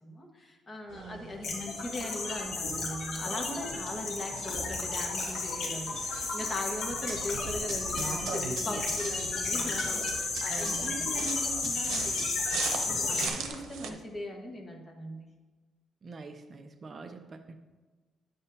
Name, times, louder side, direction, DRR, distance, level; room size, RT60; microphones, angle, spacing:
voice 1, 0.0-12.7 13.1-15.3, left 1 dB, 25° left, 0 dB, 1.4 m, -39 dB
voice 2, 0.9-1.6 8.7-9.2 9.5-9.9 10.5-11.2 13.8-14.0 16.0-17.5, right 3 dB, 30° right, 5 dB, 0.5 m, -46 dB
sound 1, 0.9-13.9, right 5 dB, 90° right, 0.8 m, -42 dB
sound 2, 1.4-13.3, left 3 dB, 60° left, 2.0 m, -33 dB
sound 3, 6.9-13.5, right 4 dB, 65° right, 1.3 m, -45 dB
10.5 x 7.6 x 2.7 m, 1.3 s
cardioid pair, 135°, 0 cm